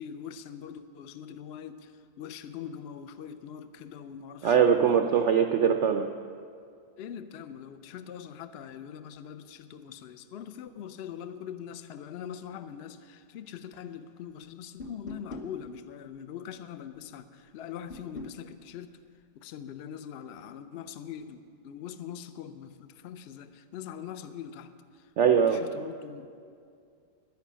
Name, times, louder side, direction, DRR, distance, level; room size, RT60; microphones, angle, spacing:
voice 1, 0.0-1.9 2.2-5.0 7.0-18.9 19.4-24.7 25.3-26.4, left 8 dB, 85° left, 10 dB, 0.5 m, -42 dB
voice 2, 4.4-6.1 25.2-25.6, right 7 dB, 80° right, 7 dB, 0.6 m, -22 dB
sound 1, 14.8-15.5 17.9-18.4, left 2 dB, 40° left, 0.9 m, -41 dB
10.5 x 10.5 x 8.5 m, 2.3 s
omnidirectional pair, 1.9 m